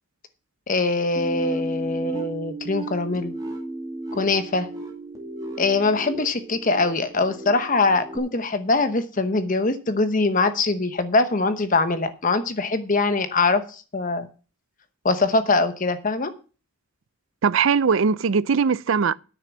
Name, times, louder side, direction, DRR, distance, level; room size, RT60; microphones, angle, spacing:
voice 1, 0.7-3.3 4.2-4.7 5.6-14.3 15.0-16.3, left 3 dB, 40° left, 0.9 m, -23 dB
sound 1, 1.2-8.2, right 1 dB, 15° right, 2.4 m, -34 dB
voice 2, 17.4-19.1, right 5 dB, 65° right, 0.5 m, -20 dB
9.6 x 6.9 x 7.3 m
head